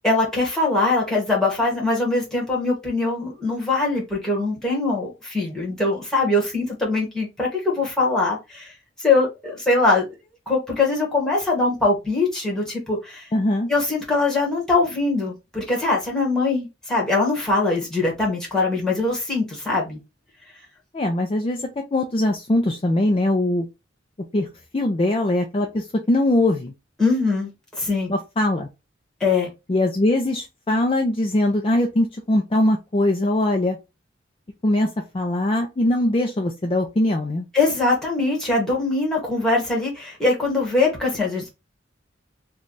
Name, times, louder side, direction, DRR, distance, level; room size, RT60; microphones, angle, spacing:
voice 1, 0.0-8.7 9.0-10.0 10.5-13.3 13.7-20.0 27.0-27.5 27.8-28.1 29.2-29.5 37.5-41.5, left 3 dB, 5° left, 1.4 m, -22 dB
voice 2, 13.3-13.7 20.9-21.6 21.9-23.6 24.3-24.5 24.7-26.7 28.1-28.7 29.7-33.8 34.6-34.9 35.1-37.5, left 1 dB, 30° left, 0.4 m, -21 dB
3.2 x 2.3 x 3.9 m
head